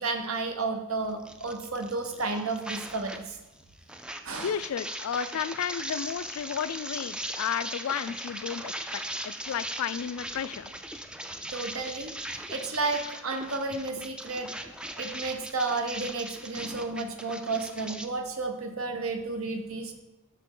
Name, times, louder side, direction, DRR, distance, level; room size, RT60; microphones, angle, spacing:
voice 1, 0.0-3.4 4.2-4.6 11.5-14.5 15.0-20.0, right 3 dB, 70° right, 5 dB, 1.0 m, -32 dB
sound 1, 1.2-3.3 3.5-18.1, right 1 dB, 5° right, 0.4 m, -39 dB
voice 2, 4.4-10.7, left 8 dB, 70° left, 15 dB, 0.3 m, -33 dB
12.5 x 4.2 x 3.7 m, 1.1 s
head